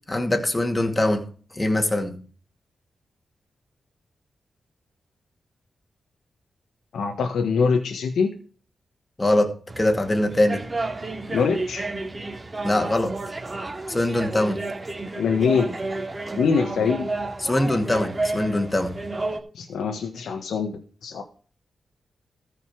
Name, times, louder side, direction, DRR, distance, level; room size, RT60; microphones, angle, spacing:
voice 1, 0.1-1.3 1.5-2.2 9.2-10.6 12.6-13.2 13.9-14.6 17.4-19.0, left 1 dB, 20° left, 2.4 m, -22 dB
voice 2, 6.9-8.3 11.3-11.9 15.2-15.7 16.4-17.1 19.5-20.7 21.0-21.2, left 5 dB, 90° left, 1.3 m, -23 dB
sound 1, 9.7-19.4, right 2 dB, 30° right, 2.8 m, -31 dB
14.5 x 5.4 x 6.2 m
cardioid pair, 75°, 0 cm